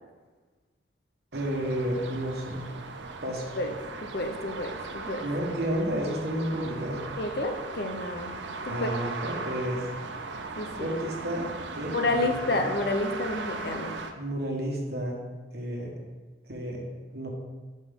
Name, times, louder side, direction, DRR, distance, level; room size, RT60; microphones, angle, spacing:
voice 1, 1.3-2.7 3.2-3.5 5.2-7.1 8.7-9.9 10.7-11.9 12.4-12.6 14.1-15.3 15.5-16.0 16.5-16.8 17.1-17.3, equal, 60° right, -1 dB, 1.3 m, -31 dB
sound 1, 1.3-14.1, right 3 dB, 75° right, 0.6 m, -38 dB
voice 2, 4.0-5.3 7.2-8.3 8.6-8.9 10.6-10.9 11.9-14.0, left 2 dB, 55° left, 5 dB, 0.7 m, -30 dB
7.3 x 5.4 x 3.6 m, 1.3 s
head